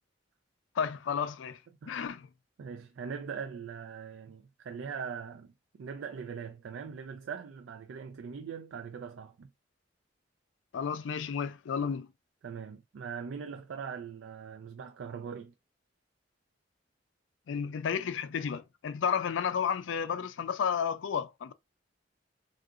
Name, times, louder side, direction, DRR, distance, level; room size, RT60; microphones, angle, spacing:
voice 1, 0.8-1.6 1.9-2.3 10.7-12.1 17.5-21.5, left 7 dB, 85° left, 0.4 m, -32 dB
voice 2, 2.6-9.5 12.4-15.5, right 6 dB, 85° right, 0.3 m, -41 dB
3.7 x 2.4 x 2.4 m
head